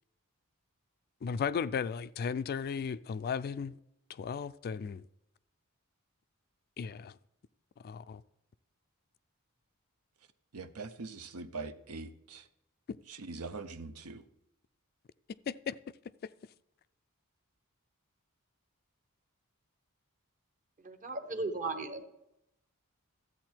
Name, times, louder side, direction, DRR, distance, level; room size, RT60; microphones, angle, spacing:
voice 1, 1.2-3.8 4.1-5.0 6.8-7.2 7.8-8.2 15.5-15.8, left 6 dB, 45° left, 0.3 m, -35 dB
voice 2, 10.5-12.5 13.1-14.3, right 3 dB, 80° right, 0.7 m, -43 dB
voice 3, 20.8-22.1, right 3 dB, 35° right, 1.0 m, -36 dB
13.0 x 8.2 x 4.5 m
head